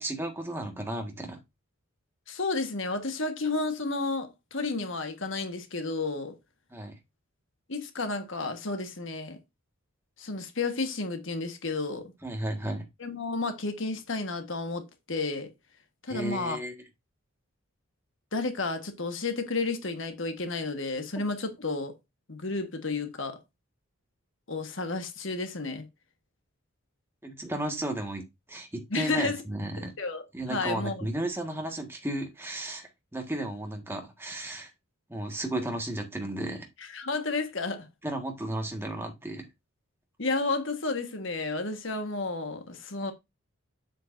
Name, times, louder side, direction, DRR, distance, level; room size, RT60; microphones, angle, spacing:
voice 1, 0.0-1.4 6.7-7.0 12.2-12.9 16.1-16.7 27.2-28.2 28.5-29.9 30.3-34.7 35.1-36.7 38.0-39.5, right 1 dB, 10° right, 1.6 m, -34 dB
voice 2, 2.3-6.4 7.7-9.4 10.2-12.1 13.0-15.5 16.0-16.6 18.3-21.9 22.3-23.4 24.5-25.8 28.9-29.4 30.0-31.1 36.9-37.9 40.2-43.1, left 3 dB, 60° left, 1.4 m, -31 dB
7.9 x 7.6 x 2.6 m
head